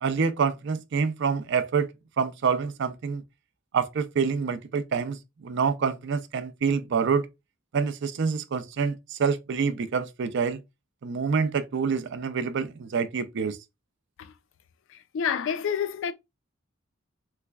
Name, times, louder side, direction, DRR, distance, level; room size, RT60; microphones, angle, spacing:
voice 1, 0.0-1.9 2.2-3.2 3.7-7.3 7.7-10.6 11.0-13.6, right 5 dB, 60° right, 0.4 m, -27 dB
voice 2, 14.9-16.1, left 7 dB, 65° left, 0.4 m, -29 dB
3.3 x 3.2 x 2.2 m
head